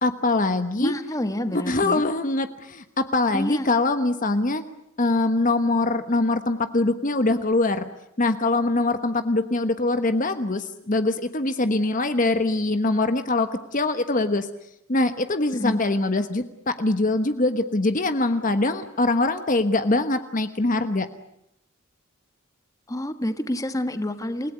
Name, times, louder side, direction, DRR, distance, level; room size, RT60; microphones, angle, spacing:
voice 1, 0.0-0.9 1.5-4.6 5.0-7.9 8.2-14.5 14.9-21.1, left 2 dB, 40° left, 9 dB, 1.2 m, -23 dB
voice 2, 0.8-2.0 3.3-3.7 15.5-15.8 22.9-24.5, left 1 dB, 15° left, 9 dB, 1.4 m, -28 dB
29.0 x 18.0 x 9.6 m, 0.79 s
head